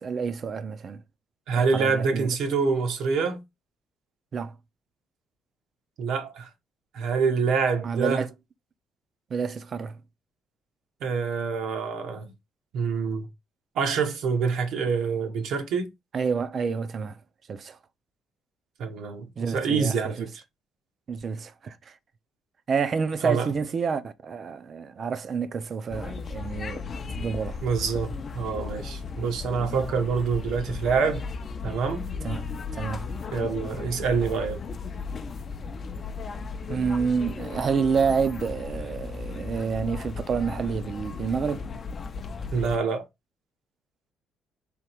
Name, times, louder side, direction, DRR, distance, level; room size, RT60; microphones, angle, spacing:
voice 1, 0.0-1.0 1.5-2.3 4.3-4.5 7.8-8.3 9.3-10.0 16.1-17.2 17.5-17.8 19.4-20.3 21.1-22.0 22.7-26.8 27.1-27.6 32.2-33.1 36.7-41.7, right 6 dB, 40° right, 0.5 m, -29 dB
voice 2, 1.5-3.4 6.0-6.5 6.9-8.3 11.0-12.3 12.7-13.3 13.7-15.9 18.8-20.3 23.2-23.5 27.6-31.2 31.6-32.0 33.3-34.6 42.5-43.1, right 5 dB, 75° right, 1.0 m, -26 dB
sound 1, 25.9-42.8, left 4 dB, 35° left, 0.5 m, -35 dB
3.6 x 2.9 x 4.4 m
cardioid pair, 135°, 0 cm